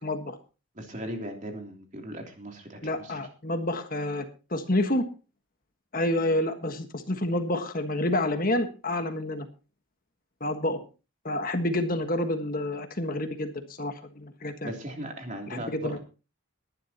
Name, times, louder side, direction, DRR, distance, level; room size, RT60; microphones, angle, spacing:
voice 1, 0.0-0.4 2.8-5.0 5.9-9.5 10.4-10.8 11.2-14.7 15.5-16.0, left 1 dB, 40° left, 7 dB, 1.5 m, -29 dB
voice 2, 0.7-3.2 14.6-16.0, right 1 dB, 35° right, 3 dB, 3.1 m, -38 dB
20.5 x 11.0 x 2.9 m, 0.33 s
head